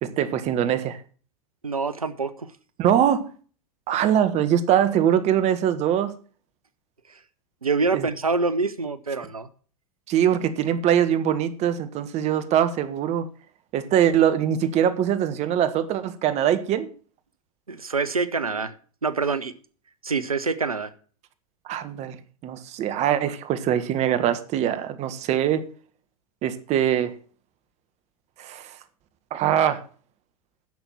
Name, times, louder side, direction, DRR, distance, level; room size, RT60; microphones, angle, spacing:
voice 1, 0.0-1.0 2.8-3.3 3.9-6.1 7.9-8.1 10.1-13.3 13.7-16.9 21.6-22.2 22.4-25.6 26.4-27.1 28.4-28.7 29.3-29.8, right 10 dB, 40° right, 10 dB, 1.6 m, -22 dB
voice 2, 1.6-2.5 7.1-7.2 7.6-9.5 17.7-18.7 19.0-19.5 20.0-20.9, right 4 dB, 90° right, 13 dB, 0.8 m, -26 dB
11.0 x 6.9 x 7.2 m, 0.42 s
figure-of-eight pair, 90°, 18 cm